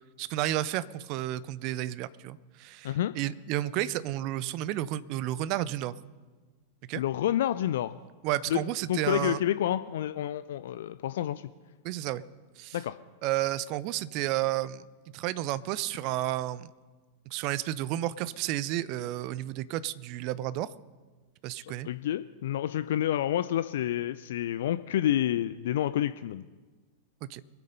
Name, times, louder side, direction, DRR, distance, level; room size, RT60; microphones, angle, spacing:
voice 1, 0.2-6.0 6.9-7.0 8.2-9.4 11.8-12.2 12.6-12.8 13.2-14.8 15.1-16.7 17.3-20.7 21.4-21.9 27.3-27.4, right 14 dB, 40° right, 18 dB, 0.5 m, -31 dB
voice 2, 6.9-8.0 8.5-8.6 8.9-11.4 12.7-13.0 21.6-26.4, left 12 dB, 60° left, 13 dB, 0.4 m, -29 dB
22.0 x 8.4 x 5.4 m, 1.3 s
figure-of-eight pair, 90°, 0 cm